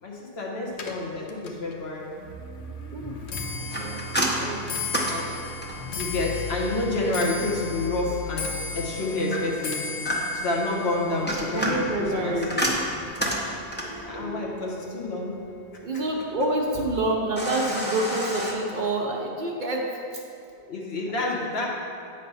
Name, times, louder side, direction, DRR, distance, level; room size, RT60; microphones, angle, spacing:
voice 1, 0.0-2.2 5.1-5.4 5.9-8.5 8.7-12.4 14.0-15.3 20.7-21.7, left 2 dB, 65° left, -2 dB, 1.3 m, -29 dB
Clock, 0.7-14.1 14.4-14.9 15.7-15.8 16.1-16.5 16.7-16.8, left 5 dB, 80° left, 0.9 m, -37 dB
sound 1, 2.2-10.6 11.1-12.0 13.8-15.5 16.6-19.2, left 2 dB, 15° right, 1.0 m, -40 dB
voice 2, 3.5-4.7 11.5-12.6 15.8-20.2 21.2-21.3, right 1 dB, 50° right, -1 dB, 0.8 m, -28 dB
sound 2, 3.7-6.0 9.3-10.5 11.1-14.0 17.4-18.5, equal, 10° left, 0.7 m, -29 dB
8.3 x 3.3 x 5.5 m, 2.5 s
omnidirectional pair, 1.1 m